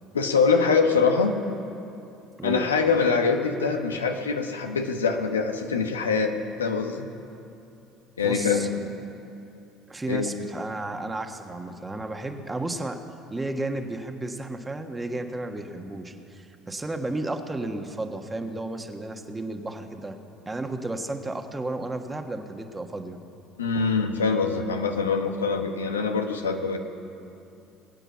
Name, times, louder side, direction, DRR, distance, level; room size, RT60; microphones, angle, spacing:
voice 1, 0.1-1.4 2.4-6.3 6.6-7.1 8.2-8.9 10.1-10.3 23.6-26.8, left 5 dB, 90° left, 5 dB, 1.0 m, -24 dB
voice 2, 8.2-8.7 9.9-13.0 13.3-20.2 20.4-23.2, right 2 dB, 15° right, 5 dB, 1.5 m, -33 dB
21.0 x 9.0 x 7.2 m, 2.7 s
hypercardioid pair, 65°, 0 cm